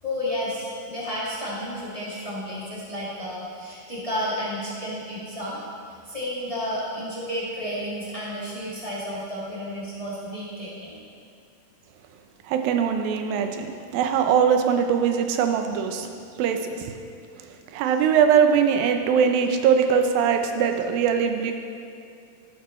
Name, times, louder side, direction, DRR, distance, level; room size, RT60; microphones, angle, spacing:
voice 1, 0.0-5.6 6.0-11.0, equal, 50° left, -8 dB, 0.4 m, -31 dB
voice 2, 12.5-16.1 16.4-16.9 17.7-21.5, right 7 dB, 80° right, 6 dB, 2.5 m, -21 dB
12.5 x 12.0 x 3.2 m, 2.5 s
omnidirectional pair, 4.4 m